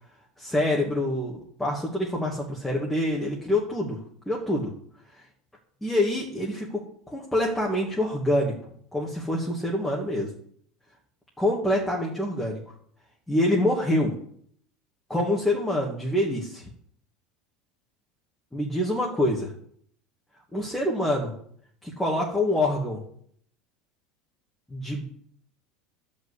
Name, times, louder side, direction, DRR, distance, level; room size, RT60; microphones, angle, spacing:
voice 1, 0.4-4.0 4.2-4.7 5.8-6.8 7.1-8.5 8.9-10.3 11.4-12.6 13.3-14.1 15.1-16.6 18.5-19.5 20.5-21.3 21.8-23.0 24.7-25.0, left 1 dB, 5° left, -3 dB, 1.7 m, -26 dB
12.0 x 5.3 x 8.2 m, 0.62 s
cardioid pair, 160°, 2 cm